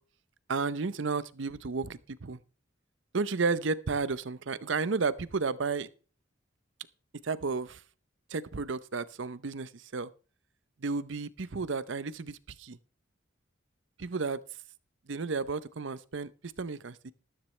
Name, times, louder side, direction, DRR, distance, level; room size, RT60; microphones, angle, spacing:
voice 1, 0.5-2.4 3.1-5.9 7.2-7.8 8.3-10.1 10.8-12.8 14.0-14.4 15.1-17.1, right 4 dB, 75° right, 0.7 m, -32 dB
13.5 x 13.0 x 3.2 m
head